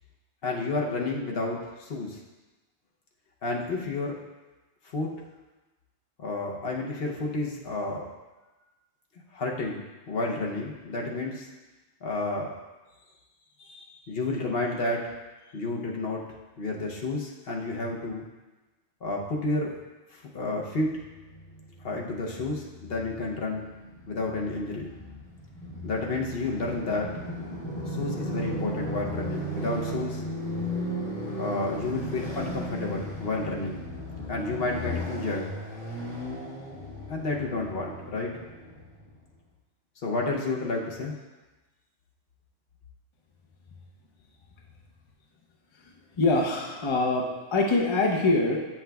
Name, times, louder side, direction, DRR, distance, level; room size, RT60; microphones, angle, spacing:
voice 1, 0.4-2.2 3.4-4.2 4.8-5.1 6.2-8.1 9.3-11.5 12.0-12.5 13.6-15.1 15.5-16.3 16.6-18.2 19.0-19.7 20.1-20.9 21.8-23.7 24.1-25.0 25.8-27.1 27.9-30.2 31.4-33.8 34.3-35.6 37.1-38.3 40.0-41.2, left 2 dB, 55° left, -1 dB, 0.9 m, -31 dB
Motorcycle, 21.0-39.2, equal, 85° left, 1.9 m, -36 dB
voice 2, 46.2-48.6, left 2 dB, 30° left, -1 dB, 0.6 m, -24 dB
8.5 x 5.8 x 2.3 m, 1.1 s
omnidirectional pair, 1.3 m